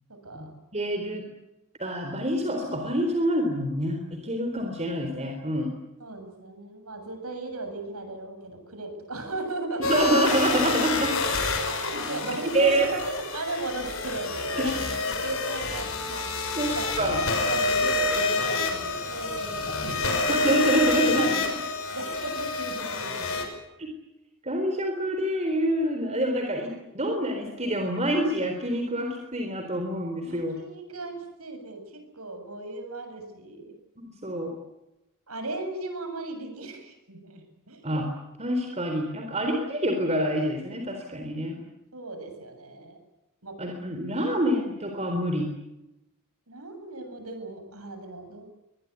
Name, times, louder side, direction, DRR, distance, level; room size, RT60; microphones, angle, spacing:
voice 1, 0.1-0.5 6.0-10.1 11.8-16.3 16.6-20.5 20.8-23.6 30.3-33.8 35.3-37.9 41.9-43.0 43.4-43.6 44.3-44.4 46.5-48.4, right 2 dB, 85° right, 6 dB, 7.6 m, -36 dB
voice 2, 0.7-1.3 1.8-5.7 9.9-11.1 12.5-12.9 14.6-14.7 16.5-16.7 17.0-17.2 20.3-21.3 23.8-23.9 24.4-30.6 34.0-34.5 37.8-38.1 38.4-41.6 43.6-45.5, right 1 dB, 30° right, 4 dB, 4.0 m, -26 dB
sound 1, 9.8-23.4, left 3 dB, 65° left, 5.9 m, -28 dB
25.5 x 20.5 x 9.6 m, 0.93 s
head